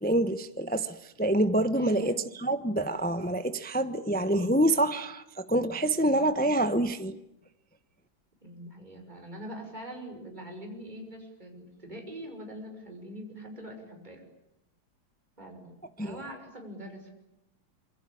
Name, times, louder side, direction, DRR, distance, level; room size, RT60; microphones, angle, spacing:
voice 1, 0.0-7.2 16.0-16.2, right 1 dB, 10° left, 0.6 m, -27 dB
voice 2, 1.7-2.2 8.4-14.2 15.4-17.1, equal, 20° right, 6.1 m, -43 dB
26.5 x 24.5 x 8.7 m
omnidirectional pair, 2.2 m